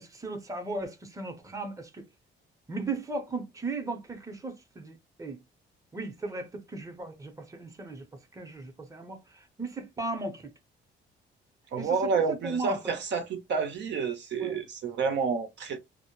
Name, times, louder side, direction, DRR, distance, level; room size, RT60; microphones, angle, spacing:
voice 1, 0.0-2.1 2.7-5.4 5.9-8.1 8.3-10.5 11.8-12.8 14.4-14.6, right 3 dB, 15° right, 0.7 m, -36 dB
voice 2, 11.7-15.8, right 5 dB, 65° right, 0.6 m, -29 dB
2.1 x 2.0 x 3.0 m
cardioid pair, 90°, 20 cm